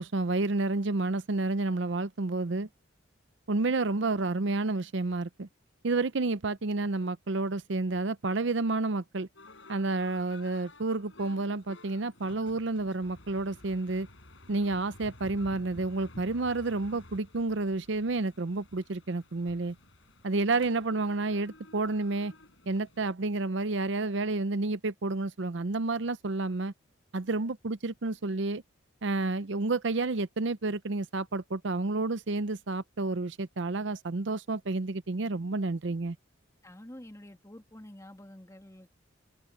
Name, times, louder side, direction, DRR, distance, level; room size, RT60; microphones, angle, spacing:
voice 1, 0.0-2.7 3.5-5.5 5.8-9.3 9.7-14.1 14.5-19.7 20.2-22.3 22.7-26.7 27.1-28.6 29.0-36.2, right 3 dB, 65° right, 0.7 m, -30 dB
sound 1, 9.3-23.1, left 1 dB, 70° left, 5.8 m, -53 dB
voice 2, 36.6-38.9, left 1 dB, 15° left, 2.4 m, -48 dB
head